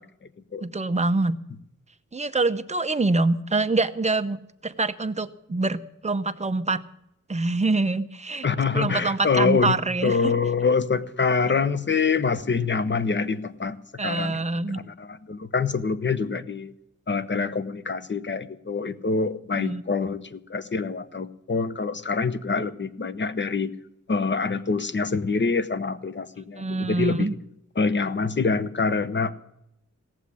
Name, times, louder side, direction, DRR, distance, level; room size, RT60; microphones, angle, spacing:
voice 1, 0.6-1.4 2.1-4.4 4.6-6.8 7.3-8.4 8.7-10.2 14.0-14.8 19.5-19.8 26.6-27.3, right 3 dB, 25° right, 9 dB, 0.7 m, -25 dB
voice 2, 8.4-16.7 17.1-23.7 24.1-27.3 27.8-29.3, left 4 dB, 40° left, 12 dB, 0.9 m, -25 dB
17.0 x 7.3 x 9.7 m, 0.80 s
wide cardioid pair, 140°, 30 cm